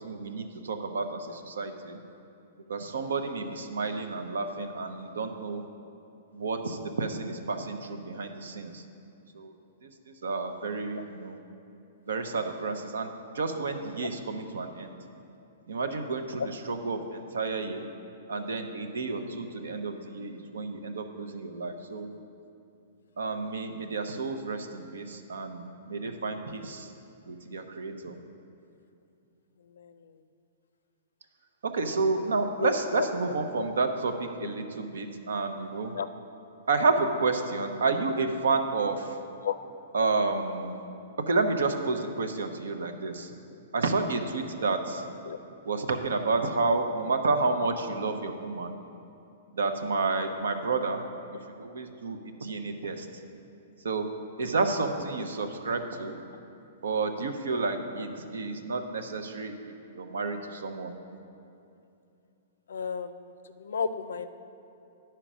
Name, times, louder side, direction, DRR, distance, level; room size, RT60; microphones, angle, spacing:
voice 1, 0.0-2.0 2.7-5.6 6.3-8.8 9.3-11.4 12.1-15.0 15.7-17.8 18.3-22.1 23.2-26.9 27.3-28.1 31.6-35.9 36.7-39.2 39.9-40.8 41.2-43.3 43.7-45.0 45.6-48.8 49.5-51.0 51.5-53.1 53.8-54.1 54.4-56.2 56.8-60.9, right 3 dB, 85° right, 7 dB, 0.7 m, -30 dB
voice 2, 29.7-30.1 32.6-33.1 35.9-36.1 39.4-39.5 45.3-45.4 62.7-64.3, left 7 dB, 85° left, 11 dB, 0.5 m, -33 dB
10.0 x 4.5 x 6.1 m, 2.7 s
hypercardioid pair, 140°, 0 cm